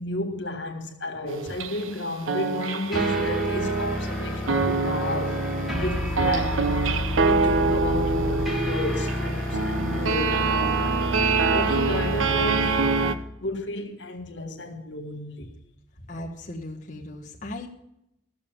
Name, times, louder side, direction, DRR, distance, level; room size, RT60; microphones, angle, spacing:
voice 1, 0.0-5.4 5.8-6.6 7.2-11.1 11.5-12.8 13.4-15.5, left 2 dB, 65° left, 1.7 m, -32 dB
sound 1, 1.3-2.0 2.3-13.1, right 4 dB, 90° right, 0.7 m, -25 dB
sound 2, 2.9-13.2, left 1 dB, ahead, 1.6 m, -29 dB
voice 2, 16.1-17.7, left 1 dB, 40° left, 1.3 m, -37 dB
14.0 x 7.1 x 7.2 m
head